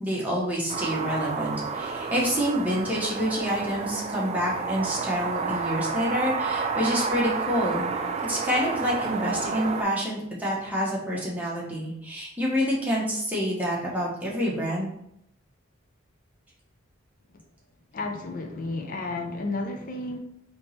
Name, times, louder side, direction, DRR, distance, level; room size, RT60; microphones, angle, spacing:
voice 1, 0.0-7.9 8.2-14.9, equal, 10° right, -5 dB, 1.0 m, -27 dB
sound 1, 0.7-9.8, right 4 dB, 30° right, 0.3 m, -30 dB
voice 2, 17.9-20.2, left 2 dB, 40° left, 3 dB, 0.5 m, -32 dB
3.5 x 2.9 x 4.1 m, 0.79 s
head